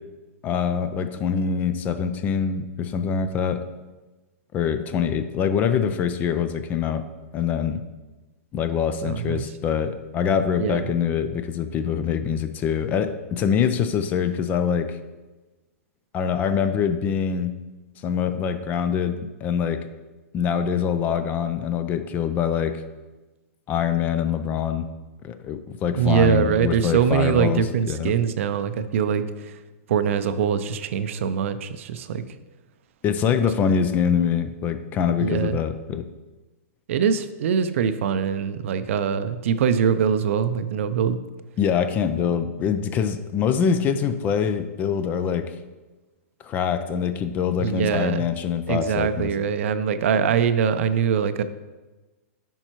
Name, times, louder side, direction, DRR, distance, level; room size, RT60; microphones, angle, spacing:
voice 1, 0.4-3.7 4.5-7.0 7.3-7.8 8.5-15.0 16.1-17.6 18.0-19.8 20.3-22.8 23.7-24.9 25.2-27.6 27.9-28.1 33.0-36.1 41.6-45.5 46.4-49.3, left 7 dB, 20° left, 10 dB, 0.4 m, -24 dB
voice 2, 9.0-9.5 10.6-10.9 25.9-29.6 29.9-32.2 35.2-35.6 36.9-41.2 47.6-48.3 48.7-51.4, right 7 dB, 60° right, 12 dB, 0.5 m, -23 dB
8.9 x 5.4 x 3.0 m, 1.2 s
hypercardioid pair, 150°, 8 cm